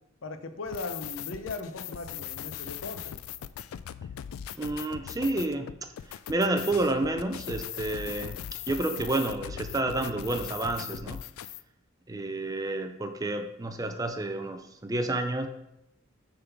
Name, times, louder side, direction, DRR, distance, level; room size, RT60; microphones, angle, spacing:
voice 1, 0.2-3.1, left 3 dB, 65° left, 8 dB, 0.7 m, -38 dB
sound 1, 0.6-11.6, left 10 dB, 85° left, 0.3 m, -39 dB
voice 2, 4.5-5.9 6.3-8.4 8.7-11.2 12.1-15.5, right 2 dB, 15° right, 7 dB, 0.5 m, -30 dB
6.6 x 3.8 x 5.9 m, 0.84 s
head